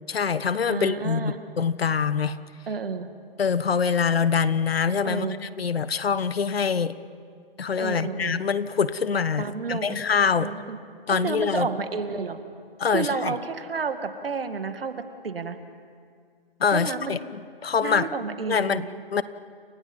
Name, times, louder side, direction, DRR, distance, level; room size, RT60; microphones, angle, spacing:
voice 1, 0.1-2.4 3.4-5.3 5.6-6.9 7.6-10.5 11.1-11.7 12.8-13.3 16.6-18.1 18.5-18.8 19.1-19.2, left 6 dB, 85° left, 15 dB, 1.2 m, -24 dB
voice 2, 0.7-1.4 2.7-3.1 5.0-5.4 7.8-8.4 9.4-10.0 10.4-10.8 11.1-12.4 12.9-14.9 15.2-15.6 16.7-17.2 17.8-19.0, right 5 dB, 75° right, 8 dB, 2.1 m, -30 dB
29.0 x 27.0 x 5.4 m, 2.1 s
hypercardioid pair, 165°, 29 cm